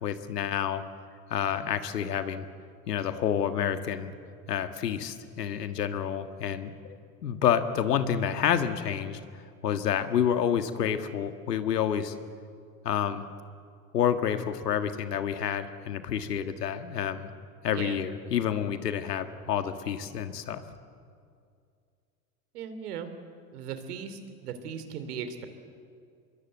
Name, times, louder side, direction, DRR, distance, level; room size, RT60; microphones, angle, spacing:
voice 1, 0.0-0.8 1.3-2.5 2.9-4.1 4.5-9.2 9.6-12.1 12.8-13.3 13.9-17.3 17.6-20.6, left 9 dB, 85° left, 9 dB, 1.8 m, -29 dB
voice 2, 17.7-18.0 22.5-23.1 23.5-25.5, right 7 dB, 75° right, 9 dB, 3.2 m, -37 dB
25.5 x 22.0 x 8.1 m, 2.3 s
hypercardioid pair, 90°, 47 cm